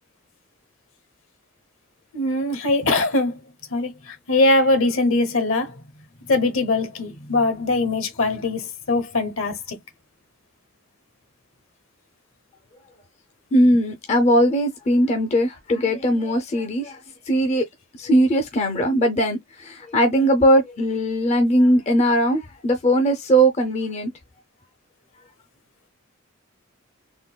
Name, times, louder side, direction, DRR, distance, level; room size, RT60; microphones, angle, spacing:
voice 1, 2.1-3.4 3.7-5.7 6.3-9.8, left 2 dB, 65° left, 0.8 m, -21 dB
voice 2, 13.5-17.0 17.3-17.7 18.0-24.1, equal, 30° left, 0.4 m, -19 dB
3.7 x 2.2 x 2.2 m
head